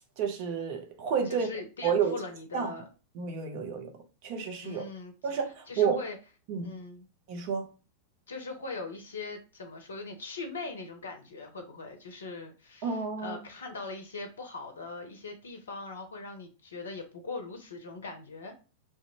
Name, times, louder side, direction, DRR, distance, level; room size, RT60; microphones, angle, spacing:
voice 1, 0.2-1.5 1.8-2.2 2.5-2.7 3.1-3.9 4.2-4.8 5.2-6.0 6.5-6.7 7.3-7.7 12.8-13.4, right 6 dB, 45° right, 0.6 m, -30 dB
voice 2, 1.3-2.8 4.6-5.1 5.7-6.2 6.6-7.0 8.3-18.5, left 3 dB, 65° left, 0.5 m, -40 dB
2.5 x 2.2 x 2.8 m
figure-of-eight pair, 90°, 0 cm